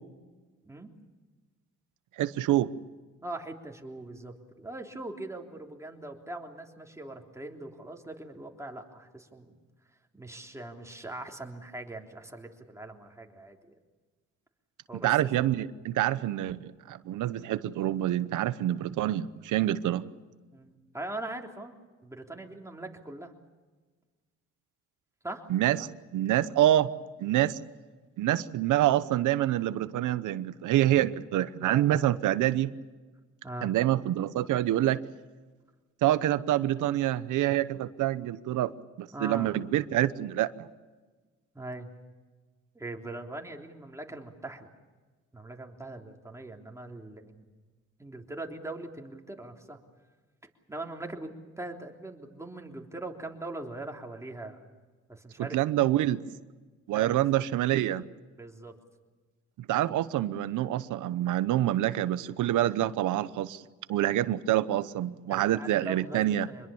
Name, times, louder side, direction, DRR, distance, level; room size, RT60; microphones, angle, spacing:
voice 1, 2.2-2.7 15.0-20.1 25.5-25.8 26.1-26.9 27.2-27.6 28.2-32.7 33.6-35.0 36.0-38.7 39.0-40.7 55.4-56.2 56.9-58.0 59.7-63.6 63.9-66.5, right 13 dB, 80° right, 15 dB, 1.0 m, -26 dB
voice 2, 3.2-9.5 9.8-13.8 14.9-15.2 20.5-21.7 22.0-23.3 25.2-25.4 31.6-32.0 33.4-33.7 39.1-39.6 41.5-41.9 42.7-44.7 45.3-47.4 48.0-49.8 50.7-51.3 51.6-54.6 55.1-55.6 56.9-57.4 58.4-58.7 65.3-66.7, right 2 dB, 10° right, 1 dB, 3.4 m, -41 dB
25.5 x 21.5 x 7.1 m, 1.3 s
cardioid pair, 90°, 30 cm